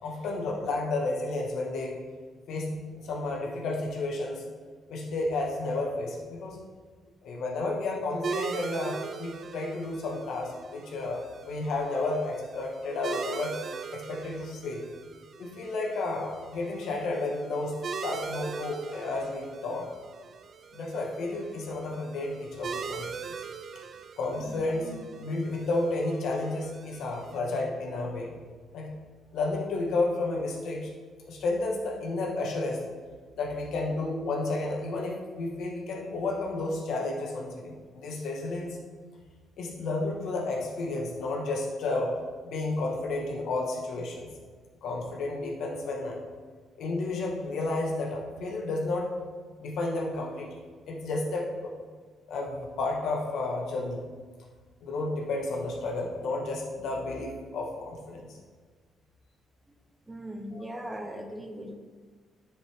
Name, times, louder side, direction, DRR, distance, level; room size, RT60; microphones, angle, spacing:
voice 1, 0.0-2.0 2.5-4.4 4.9-6.6 7.2-13.6 13.9-14.8 15.4-19.9 20.7-23.1 24.2-28.3 28.7-28.9 29.3-30.9 31.3-32.8 33.3-38.8 39.6-42.2 42.4-44.3 44.8-46.2 46.8-49.1 49.6-50.5 50.9-51.7 52.3-54.0 54.8-58.4 60.5-60.8, left 2 dB, 70° left, -1 dB, 1.6 m, -32 dB
sound 1, 8.2-27.4, right 5 dB, 45° right, 0.4 m, -41 dB
voice 2, 60.1-61.7, equal, 15° right, 5 dB, 0.7 m, -39 dB
9.9 x 4.9 x 3.6 m, 1.5 s
cardioid pair, 110°, 0 cm